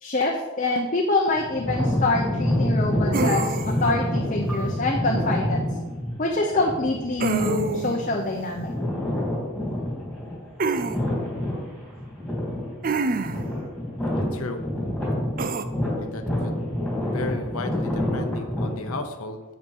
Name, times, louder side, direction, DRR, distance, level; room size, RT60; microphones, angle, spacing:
voice 1, 0.0-5.7 6.2-8.7, left 2 dB, 35° left, 0 dB, 0.9 m, -25 dB
sound 1, 1.3-19.0, left 1 dB, 5° left, 3.3 m, -27 dB
sound 2, 3.1-3.9 7.2-8.0 10.6-11.0 12.8-13.5 15.4-15.6, right 3 dB, 40° right, 0.5 m, -26 dB
voice 2, 14.3-14.6 16.0-16.5 17.1-19.4, left 3 dB, 70° left, 5 dB, 0.8 m, -34 dB
8.4 x 8.0 x 5.5 m, 1.2 s
head